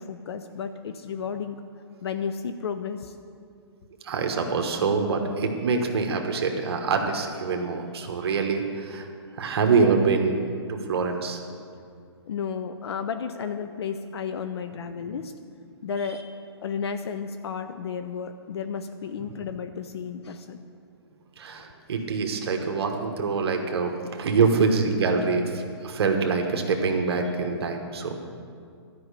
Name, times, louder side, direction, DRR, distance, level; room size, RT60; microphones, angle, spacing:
voice 1, 0.0-1.6 2.0-3.1 12.3-15.3 15.8-16.2 16.6-20.6, left 6 dB, 70° left, 9 dB, 0.6 m, -33 dB
voice 2, 4.0-9.1 9.4-10.3 10.7-11.4 15.0-15.1 21.4-28.1, right 4 dB, 65° right, 3 dB, 1.3 m, -25 dB
12.5 x 5.6 x 8.2 m, 2.3 s
hypercardioid pair, 155°, 14 cm